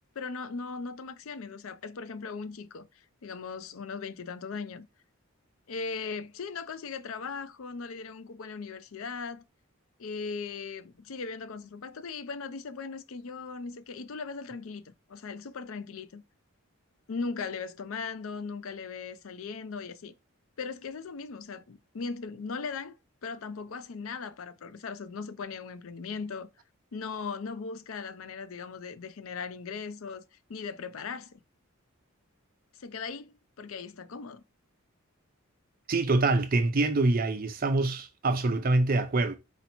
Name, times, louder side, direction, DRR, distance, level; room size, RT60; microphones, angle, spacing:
voice 1, 0.2-2.9 3.2-4.9 5.7-9.4 10.0-16.2 17.1-20.1 20.6-23.0 23.2-26.5 26.9-30.2 30.5-31.4 32.8-34.4, left 5 dB, 70° left, 0.5 m, -38 dB
voice 2, 35.9-39.4, right 2 dB, 40° right, 0.5 m, -25 dB
4.3 x 2.9 x 4.2 m
head